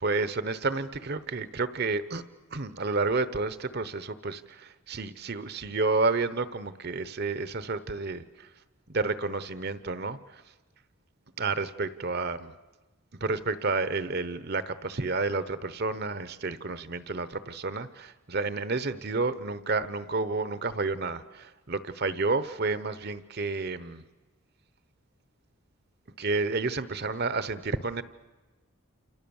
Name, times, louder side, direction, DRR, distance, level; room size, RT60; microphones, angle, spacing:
voice 1, 0.0-2.2 2.5-8.5 8.9-10.4 11.4-12.5 13.2-24.1 26.2-28.0, right 3 dB, 45° right, 14 dB, 0.9 m, -30 dB
28.5 x 28.0 x 7.1 m, 1.2 s
head